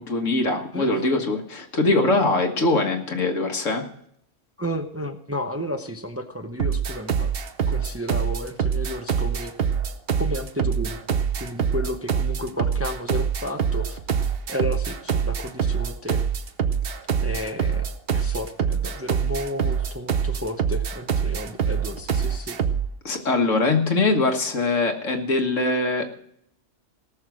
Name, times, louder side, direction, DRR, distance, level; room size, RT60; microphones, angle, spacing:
voice 1, 0.0-3.9 23.0-26.1, left 2 dB, 80° left, 4 dB, 2.0 m, -22 dB
voice 2, 0.7-1.1 4.6-7.3 7.7-9.7 10.2-14.0 14.5-16.2 17.2-17.8 18.1-22.6, left 1 dB, 15° right, 6 dB, 0.6 m, -32 dB
sound 1, 6.6-22.9, right 7 dB, 55° right, 1.0 m, -25 dB
18.0 x 6.6 x 6.2 m, 0.69 s
omnidirectional pair, 1.3 m